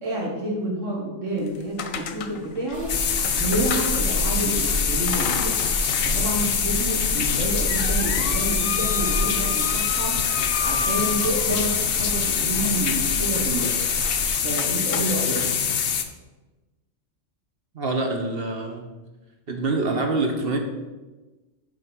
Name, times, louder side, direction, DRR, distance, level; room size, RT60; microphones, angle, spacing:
voice 1, 0.0-3.0 3.3-5.6 6.0-10.3 10.6-13.8 14.4-15.7, right 1 dB, 70° right, -1 dB, 1.6 m, -29 dB
sound 1, 1.4-4.5 5.1-6.1 6.5-6.6 7.2-11.8 14.0-14.2 14.6-15.5, left 6 dB, 85° left, 1.2 m, -33 dB
sound 2, 2.7-14.3, equal, 5° left, 3.0 m, -32 dB
sound 3, 2.9-16.0, left 7 dB, 65° left, 1.0 m, -24 dB
voice 2, 17.7-18.9 19.5-20.6, right 3 dB, 50° right, 3 dB, 1.2 m, -25 dB
7.5 x 5.0 x 6.0 m, 1.2 s
omnidirectional pair, 1.3 m